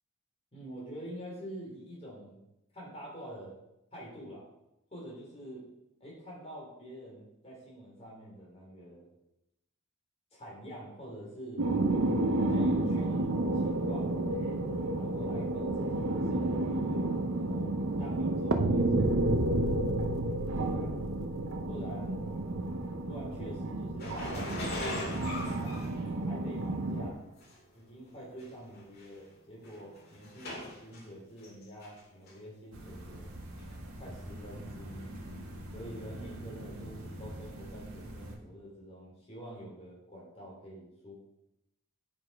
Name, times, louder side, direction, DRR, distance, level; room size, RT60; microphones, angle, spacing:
voice 1, 0.5-2.4 2.7-3.6 3.9-4.5 4.9-5.6 6.0-9.1 10.3-11.6 12.2-14.6 15.0-19.8 20.7-20.9 21.7-22.2 23.1-27.2 27.7-33.3 33.9-35.2 35.7-41.2, equal, 30° left, -4 dB, 3.1 m, -47 dB
sound 1, 11.6-27.1, right 2 dB, 60° right, 0.7 m, -30 dB
sound 2, 24.0-26.6 27.4-27.5 28.4-28.5 28.8-29.1 29.6-31.0 31.4-32.0 32.3-32.4 33.6-33.7, left 1 dB, 45° left, 2.1 m, -39 dB
sound 3, 32.7-38.4, right 1 dB, 85° right, 1.4 m, -44 dB
8.5 x 5.3 x 4.6 m, 0.86 s
head